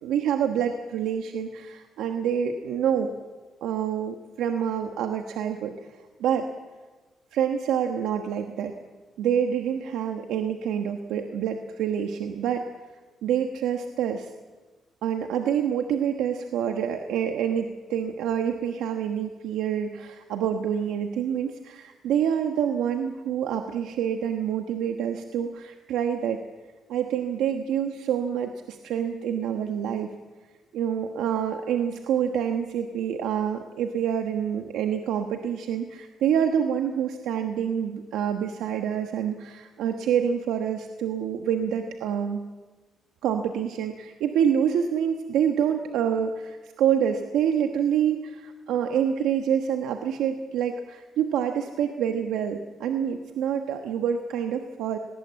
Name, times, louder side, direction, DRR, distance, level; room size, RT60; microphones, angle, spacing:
voice 1, 0.0-3.1 3.6-5.9 6.2-6.5 7.3-8.7 9.2-12.6 13.2-14.3 15.0-26.4 26.9-30.1 30.7-42.4 43.2-55.0, right 8 dB, 85° right, 5 dB, 1.3 m, -27 dB
18.5 x 18.5 x 8.6 m, 1.3 s
cardioid pair, 90°, 0 cm